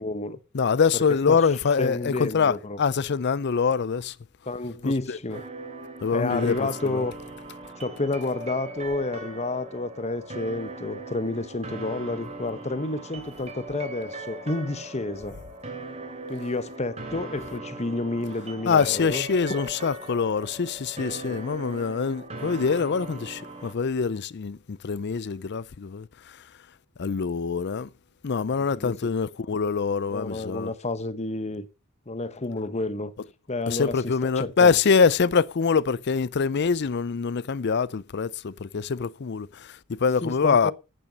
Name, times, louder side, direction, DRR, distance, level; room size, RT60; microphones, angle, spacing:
voice 1, 0.0-0.4 0.9-1.4 1.8-2.8 4.5-5.4 6.1-7.1 7.7-15.4 16.3-19.3 21.0-21.4 28.8-28.9 30.1-31.7 32.1-33.1 33.5-34.8 40.2-40.7, left 2 dB, 30° left, 1.0 m, -30 dB
voice 2, 0.5-4.2 4.8-5.2 6.0-7.0 18.7-26.4 27.0-27.9 28.2-30.7 33.7-40.7, left 5 dB, 50° left, 0.5 m, -24 dB
sound 1, 5.3-23.7, right 2 dB, 30° right, 2.8 m, -39 dB
10.5 x 9.0 x 5.3 m
head